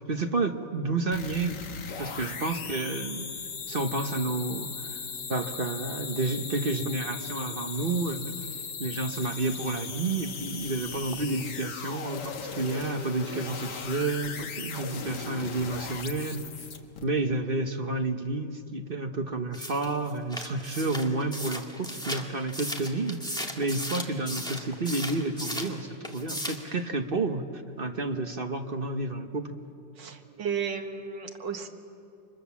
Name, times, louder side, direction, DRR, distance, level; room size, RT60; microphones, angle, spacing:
voice 1, 0.1-1.6 2.0-3.3 3.7-5.0 5.3-8.4 8.8-16.5 17.0-27.4 27.8-29.6, right 3 dB, 35° right, 5 dB, 1.0 m, -30 dB
sound 1, 1.1-17.0, left 6 dB, 70° left, 2.0 m, -38 dB
sound 2, 19.5-25.8 26.0-26.7, equal, ahead, 1.9 m, -36 dB
voice 2, 30.0-31.7, right 6 dB, 80° right, 3 dB, 2.2 m, -33 dB
29.5 x 25.0 x 7.2 m, 2.7 s
omnidirectional pair, 1.9 m